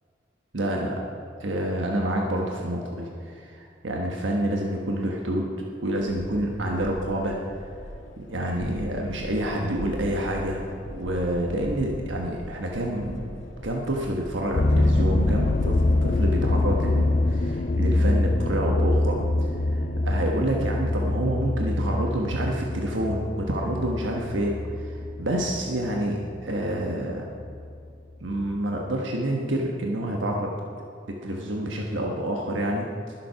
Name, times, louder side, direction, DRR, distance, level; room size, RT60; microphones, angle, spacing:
voice 1, 0.5-0.9 1.4-5.5 5.8-7.6 8.2-13.3 13.6-19.2 19.7-27.3 28.2-30.5 31.1-33.1, right 1 dB, 80° right, 0 dB, 1.3 m, -28 dB
sound 1, 6.0-16.3, equal, 85° left, 1.8 m, -40 dB
sound 2, 14.5-26.8 27.4-27.8 28.4-28.5 28.8-28.9, left 2 dB, 40° left, 0.5 m, -24 dB
20.0 x 7.5 x 5.7 m, 2.5 s
head